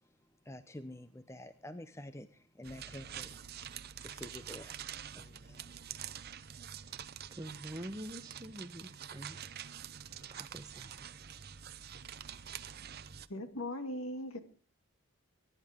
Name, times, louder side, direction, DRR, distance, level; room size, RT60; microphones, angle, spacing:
voice 1, 0.4-3.6 4.0-4.8 5.1-5.9, left 1 dB, 10° left, 0.7 m, -49 dB
sound 1, 2.6-13.3, right 9 dB, 45° right, 0.7 m, -46 dB
voice 2, 7.3-9.5 10.3-11.1, right 1 dB, 15° right, 0.9 m, -46 dB
voice 3, 13.3-14.4, left 1 dB, 75° left, 2.1 m, -39 dB
23.0 x 11.0 x 3.6 m
head